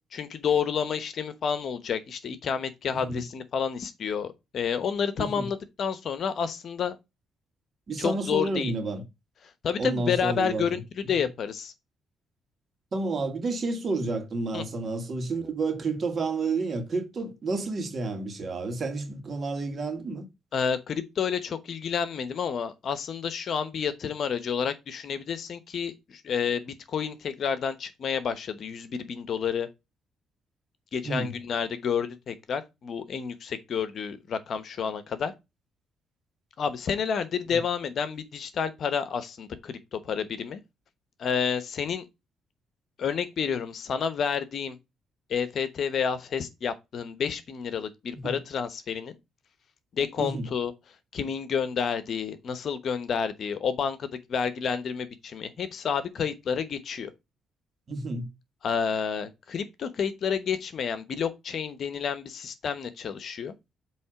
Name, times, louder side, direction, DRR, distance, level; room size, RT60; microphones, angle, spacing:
voice 1, 0.1-7.0 8.0-8.7 9.6-11.7 14.5-14.6 20.5-29.7 30.9-35.3 36.6-40.6 41.2-42.0 43.0-44.8 45.3-49.1 49.9-50.7 51.1-57.1 58.6-63.5, left 7 dB, 60° left, 1.0 m, -30 dB
voice 2, 2.9-3.2 5.2-5.5 7.9-9.0 9.8-11.1 12.9-20.3 31.0-31.3 37.5-37.6 48.1-48.4 50.2-50.5 57.9-58.3, right 3 dB, 45° right, 1.8 m, -30 dB
7.7 x 3.3 x 4.9 m
cardioid pair, 90°, 0 cm